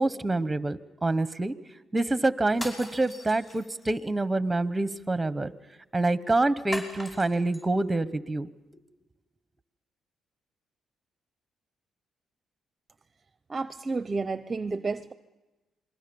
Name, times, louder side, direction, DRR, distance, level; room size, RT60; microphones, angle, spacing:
voice 1, 0.0-1.5 1.9-5.5 5.9-8.5, right 2 dB, 15° right, 14 dB, 1.1 m, -26 dB
sound 1, 2.5-4.0 6.7-7.6, equal, 25° left, 5.5 m, -39 dB
voice 2, 13.5-15.1, right 3 dB, 30° right, 12 dB, 0.7 m, -31 dB
28.0 x 21.5 x 7.1 m, 1.1 s
cardioid pair, 90°, 0 cm